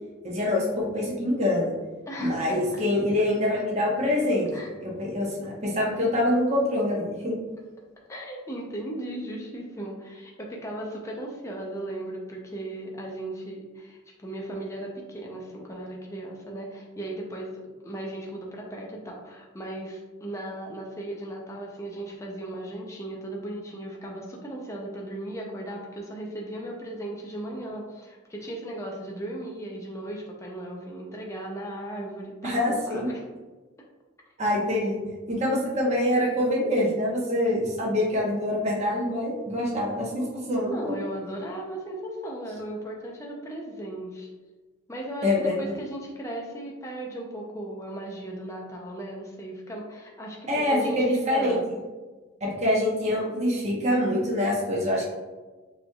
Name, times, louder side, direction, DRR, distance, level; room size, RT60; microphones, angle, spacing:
voice 1, 0.2-1.7 2.2-4.5 4.8-7.4 32.4-33.1 34.4-35.0 35.3-41.0 45.2-45.7 50.5-51.6 52.4-55.2, left 1 dB, 35° right, -4 dB, 1.0 m, -25 dB
voice 2, 2.1-2.8 4.5-4.7 8.1-33.2 40.7-44.3 44.9-51.6, right 1 dB, 15° left, -2 dB, 0.5 m, -37 dB
6.0 x 3.2 x 2.3 m, 1.3 s
head